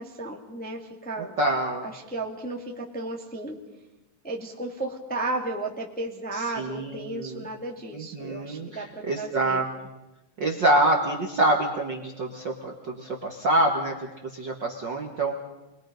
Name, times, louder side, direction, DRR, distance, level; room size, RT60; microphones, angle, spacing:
voice 1, 0.0-1.4 1.8-3.6 4.2-9.6, right 2 dB, 5° left, 0 dB, 1.4 m, -34 dB
voice 2, 1.4-1.9 6.3-7.4 7.9-9.7 10.4-15.4, right 1 dB, 45° right, 1 dB, 1.7 m, -26 dB
27.5 x 21.5 x 5.3 m, 1.0 s
omnidirectional pair, 3.9 m